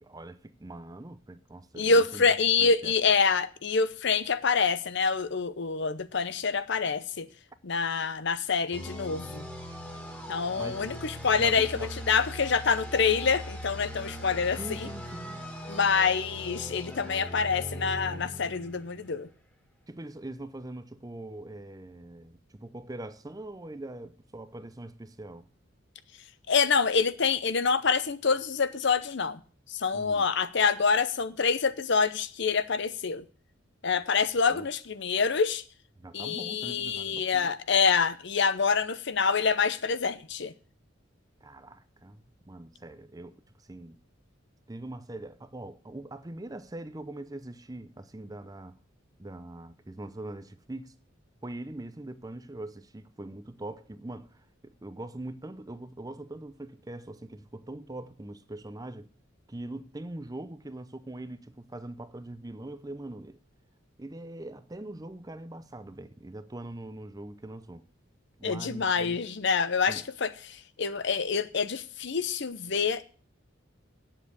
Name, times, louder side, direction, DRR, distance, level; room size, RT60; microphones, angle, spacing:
voice 1, 0.0-2.3 2.6-2.9 10.6-10.9 11.4-11.9 14.6-15.6 19.9-25.5 29.9-30.3 34.4-34.7 36.0-37.5 41.4-43.4 43.7-44.0 44.7-48.8 49.2-50.9 51.4-59.1 59.5-63.4 64.0-67.8 68.4-69.2 69.9-70.1, right 1 dB, 20° right, 0.6 m, -42 dB
voice 2, 1.8-7.3 7.6-9.5 10.3-14.9 15.7-19.3 26.5-29.4 29.7-33.2 33.8-35.6 36.1-40.5 68.4-73.0, left 5 dB, 60° left, 0.8 m, -26 dB
sound 1, 8.7-19.3, equal, 10° left, 2.1 m, -40 dB
9.1 x 7.6 x 8.1 m
head